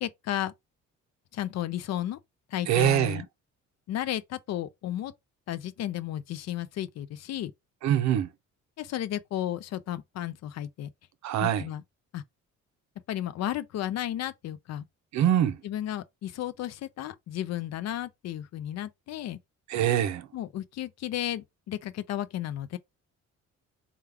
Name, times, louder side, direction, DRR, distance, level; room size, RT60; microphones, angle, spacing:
voice 1, 0.0-0.5 1.3-2.2 2.5-3.3 3.9-5.1 5.5-7.5 8.8-10.9 11.4-11.8 12.1-12.2 13.1-14.8 15.6-19.4 20.3-22.8, left 12 dB, 60° left, 0.4 m, -33 dB
voice 2, 2.7-3.2 7.8-8.3 11.2-11.7 15.1-15.6 19.7-20.3, right 10 dB, 65° right, 0.5 m, -24 dB
3.3 x 2.3 x 3.3 m
cardioid pair, 90°, 30 cm